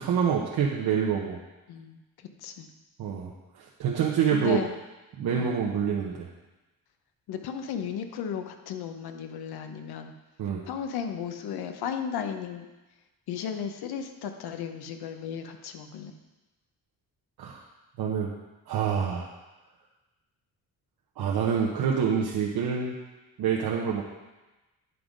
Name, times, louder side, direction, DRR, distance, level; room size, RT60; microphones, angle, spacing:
voice 1, 0.0-1.4 3.0-4.6 5.2-6.3 10.4-10.6 17.4-17.6 18.0-18.3 18.7-19.3 21.2-22.9 23.4-24.0, right 7 dB, 80° right, -2 dB, 0.9 m, -27 dB
voice 2, 1.7-2.7 4.3-4.7 5.3-5.6 7.3-10.1 10.6-12.7 13.3-16.1, left 7 dB, 85° left, 7 dB, 0.7 m, -35 dB
9.4 x 3.8 x 5.1 m, 1.1 s
cardioid pair, 115°, 37 cm